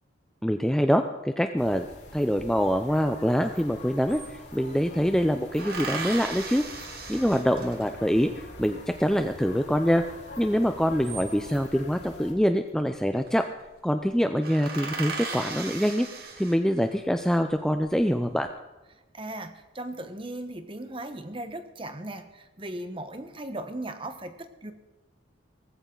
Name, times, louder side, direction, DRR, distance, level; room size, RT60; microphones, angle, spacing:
voice 1, 0.4-1.9 2.1-6.6 7.1-10.0 10.4-13.5 13.8-16.1 16.4-18.5, equal, 5° left, 6 dB, 0.5 m, -25 dB
sound 1, 1.6-12.3, left 2 dB, 55° left, 3.7 m, -45 dB
sound 2, 3.5-3.6 3.8-4.8 5.6-8.1 10.8-11.7 12.9-13.3 13.6-13.7 14.1-14.2 14.4-17.0 17.5-18.2, right 4 dB, 50° right, 2.0 m, -37 dB
voice 2, 19.1-24.7, right 1 dB, 25° right, 9 dB, 1.1 m, -37 dB
18.5 x 15.5 x 3.9 m, 1.1 s
head